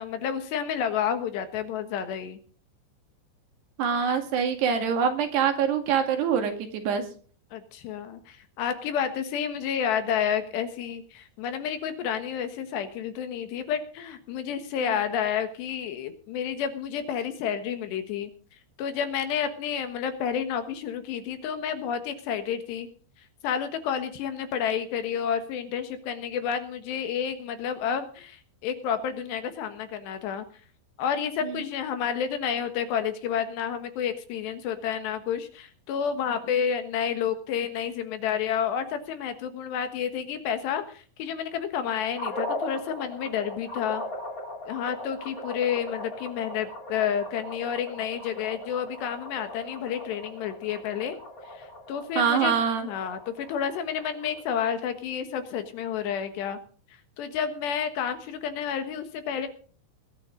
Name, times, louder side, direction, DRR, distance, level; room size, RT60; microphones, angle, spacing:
voice 1, 0.0-2.4 7.5-18.3 18.8-22.9 23.4-30.4 31.0-44.0 44.7-51.2 51.5-52.5 52.8-56.6 57.2-59.5, left 8 dB, 70° left, 9 dB, 3.4 m, -30 dB
voice 2, 3.8-7.1 31.4-31.6 52.2-52.9, right 7 dB, 65° right, 5 dB, 3.9 m, -25 dB
sound 1, 42.2-54.4, left 1 dB, 25° left, 2.1 m, -39 dB
21.0 x 11.5 x 3.9 m, 0.41 s
omnidirectional pair, 5.4 m